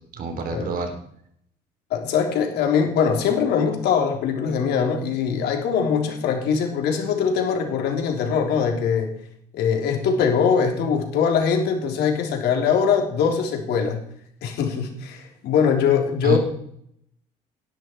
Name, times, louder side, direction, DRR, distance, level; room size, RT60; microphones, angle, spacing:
voice 1, 0.1-0.9 16.2-16.4, right 3 dB, 60° right, 5 dB, 3.6 m, -26 dB
voice 2, 1.9-9.1 9.5-14.0 14.4-16.4, left 6 dB, 75° left, 2 dB, 3.5 m, -22 dB
18.0 x 11.0 x 4.6 m, 0.69 s
cardioid pair, 110°, 17 cm